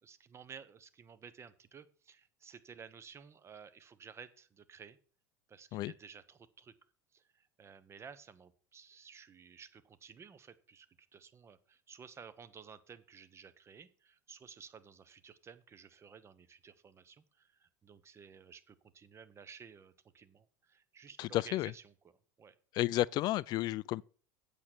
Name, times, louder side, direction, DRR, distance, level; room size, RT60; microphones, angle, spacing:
voice 1, 0.0-5.0 5.5-6.7 7.1-21.9 22.4-22.6, right 6 dB, 30° right, 1.0 m, -54 dB
voice 2, 21.2-21.7 22.7-24.0, left 16 dB, 45° left, 0.4 m, -32 dB
8.4 x 6.8 x 6.1 m
hypercardioid pair, 80°, 10 cm